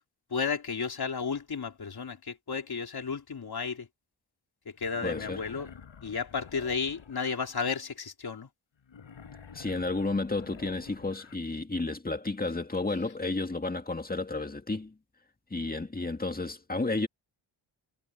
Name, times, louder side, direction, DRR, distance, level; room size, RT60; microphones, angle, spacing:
voice 1, 0.3-3.9 4.7-5.7 6.0-8.5, left 5 dB, 50° left, 3.7 m, -33 dB
Wild animals, 4.9-7.4 8.9-11.4, left 6 dB, 70° left, 5.3 m, -49 dB
voice 2, 5.0-5.4 9.5-14.9 15.5-17.1, left 3 dB, 20° left, 2.0 m, -32 dB
wide cardioid pair, 95°, 47 cm